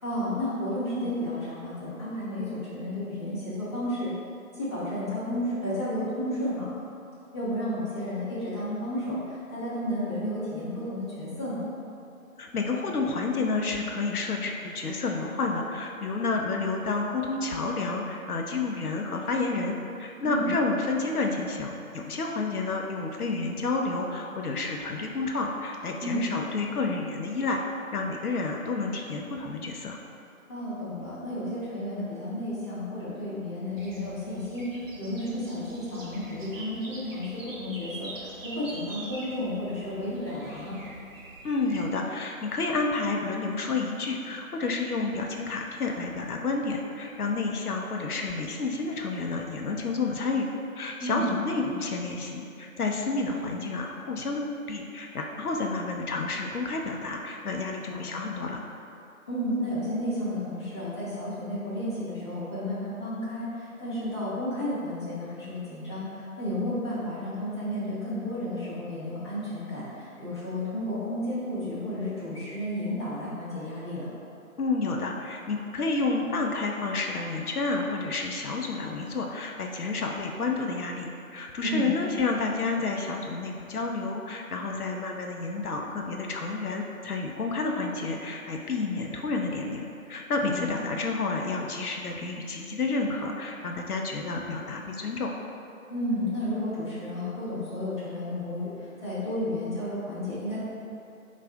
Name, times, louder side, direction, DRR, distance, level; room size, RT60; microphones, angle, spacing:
voice 1, 0.0-4.1 4.5-6.7 7.3-11.6 20.2-20.5 26.0-26.3 30.5-40.8 51.0-51.3 57.8-58.1 59.3-74.1 81.6-81.9 90.4-90.8 95.9-100.6, left 1 dB, 20° left, -14 dB, 0.8 m, -32 dB
voice 2, 12.4-27.6 27.9-30.0 41.4-50.5 50.8-58.6 74.6-95.3, left 3 dB, 85° left, 1 dB, 0.6 m, -30 dB
sound 1, 33.8-41.9, right 2 dB, 60° right, 0.8 m, -44 dB
6.9 x 2.4 x 2.3 m, 2.6 s
figure-of-eight pair, 160°, 43 cm